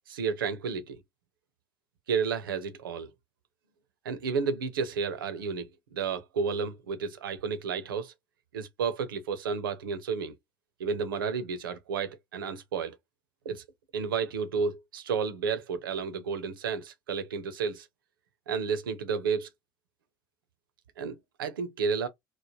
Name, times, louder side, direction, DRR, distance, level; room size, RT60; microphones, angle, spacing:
voice 1, 0.1-1.0 2.1-3.1 4.0-8.1 8.5-10.4 10.8-13.0 13.4-13.6 13.9-17.9 18.5-19.5 21.0-22.1, right 5 dB, 85° right, 0.6 m, -31 dB
3.1 x 2.1 x 2.7 m
hypercardioid pair, 65°, 11 cm